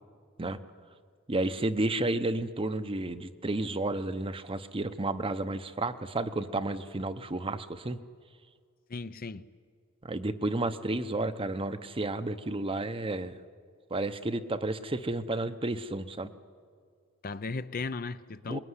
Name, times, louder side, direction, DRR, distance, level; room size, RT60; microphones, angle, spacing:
voice 1, 1.3-8.0 10.0-13.3 13.9-16.3 18.5-18.6, right 2 dB, 25° right, 0.8 m, -31 dB
voice 2, 8.9-9.5 17.2-18.6, left 3 dB, 45° left, 0.6 m, -36 dB
26.0 x 21.0 x 9.8 m
head